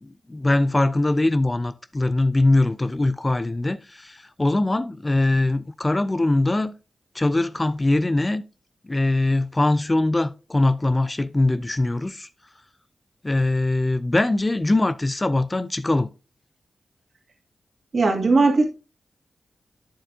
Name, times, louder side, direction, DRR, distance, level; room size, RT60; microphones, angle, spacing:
voice 1, 0.0-6.7 7.1-8.4 8.8-12.3 13.2-16.1, left 2 dB, 25° left, 0.5 m, -22 dB
voice 2, 17.9-18.6, right 3 dB, 60° right, 2.3 m, -18 dB
9.2 x 7.5 x 2.7 m
cardioid pair, 65°, 0 cm